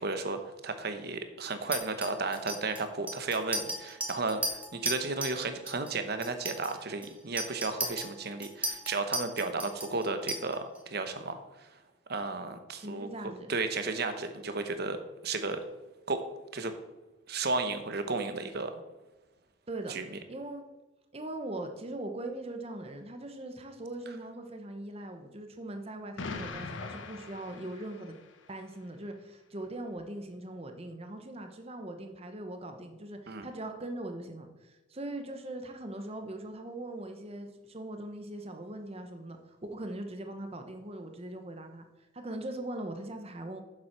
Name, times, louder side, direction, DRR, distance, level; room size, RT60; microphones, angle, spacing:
voice 1, 0.0-11.7 12.1-15.6 16.1-16.3 16.5-16.7 17.3-18.7 19.9-20.2 33.3-33.5, right 3 dB, 55° right, 8 dB, 1.0 m, -34 dB
Chink clink, 1.7-5.4 5.7-5.9 6.2-10.8, right 1 dB, 5° right, 1.4 m, -36 dB
voice 2, 12.8-13.5 19.7-19.9 20.3-20.6 21.1-28.2 28.5-41.8 42.1-43.6, right 1 dB, 30° right, 6 dB, 0.9 m, -40 dB
Explosion, 26.2-28.4, left 3 dB, 75° left, 1.0 m, -41 dB
7.7 x 7.2 x 5.9 m, 1.1 s
head